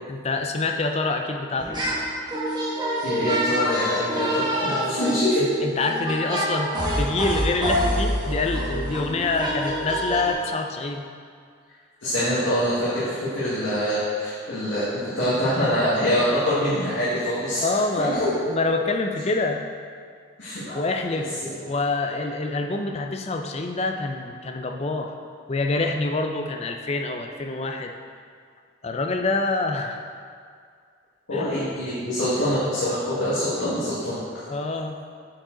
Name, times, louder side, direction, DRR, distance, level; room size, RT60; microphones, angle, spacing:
voice 1, 0.1-1.8 4.7-11.0 17.6-19.6 20.4-21.3 21.7-25.1 25.5-27.9 28.8-30.0 31.3-31.5 34.5-35.0, left 3 dB, 30° left, 4 dB, 0.5 m, -26 dB
sound 1, 1.6-2.0 2.3-10.3, equal, 20° right, 1.2 m, -26 dB
voice 2, 3.0-4.4 4.9-5.5 12.0-17.6 18.0-18.3 20.4-20.8 21.1-21.6 22.0-22.2 31.3-34.2, equal, 70° left, -11 dB, 1.8 m, -25 dB
8.7 x 5.1 x 3.8 m, 2.1 s
head